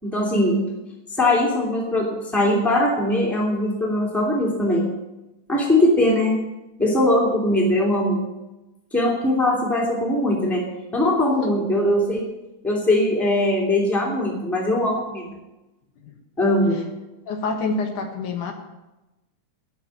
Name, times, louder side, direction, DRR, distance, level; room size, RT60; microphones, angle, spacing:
voice 1, 0.0-0.6 1.2-4.9 5.5-6.3 6.8-8.2 8.9-10.6 10.9-12.2 12.6-15.2 16.4-16.8, left 1 dB, ahead, -2 dB, 2.3 m, -20 dB
voice 2, 17.3-18.5, left 3 dB, 70° left, 3 dB, 2.8 m, -27 dB
13.0 x 6.1 x 9.1 m, 1.0 s
omnidirectional pair, 3.7 m